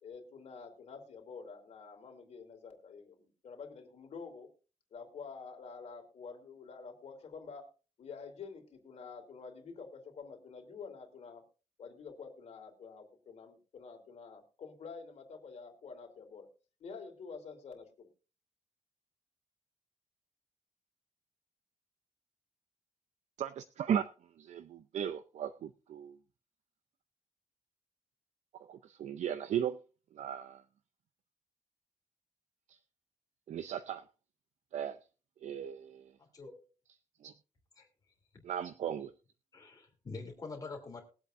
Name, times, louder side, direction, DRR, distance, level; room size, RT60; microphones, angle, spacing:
voice 1, 0.0-4.5 4.9-7.7 8.0-11.4 11.8-16.5 16.8-18.1, left 5 dB, 60° left, 3 dB, 2.9 m, -48 dB
voice 2, 23.4-24.1 24.4-26.2 28.5-29.8 30.1-30.6 32.7-32.8 33.5-34.0 34.7-35.0 35.4-36.1 37.2-37.3 38.4-39.1, right 9 dB, 65° right, 12 dB, 0.5 m, -36 dB
voice 3, 36.2-36.6 37.8-37.9 38.3-38.4 39.5-41.0, left 3 dB, 30° left, 1 dB, 2.8 m, -45 dB
21.5 x 8.0 x 2.6 m, 0.36 s
wide cardioid pair, 175°, 13 cm